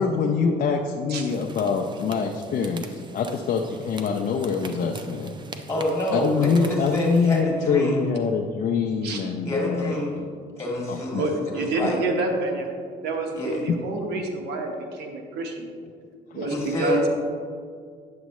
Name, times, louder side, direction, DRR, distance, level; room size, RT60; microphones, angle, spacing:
voice 1, 0.0-5.3 6.1-10.0 10.9-11.2 16.3-16.5, left 5 dB, 50° left, 1 dB, 0.6 m, -25 dB
sound 1, 1.3-7.4, right 3 dB, 25° right, 0.6 m, -42 dB
voice 2, 5.7-8.0 9.5-10.2 10.6-12.0 13.3-13.6 16.5-17.1, left 1 dB, 15° left, -3 dB, 2.2 m, -27 dB
voice 3, 11.1-12.7 13.0-15.7 16.3-17.0, right 2 dB, 80° right, 3 dB, 1.1 m, -28 dB
9.4 x 7.3 x 3.1 m, 2.1 s
cardioid pair, 110°, 17 cm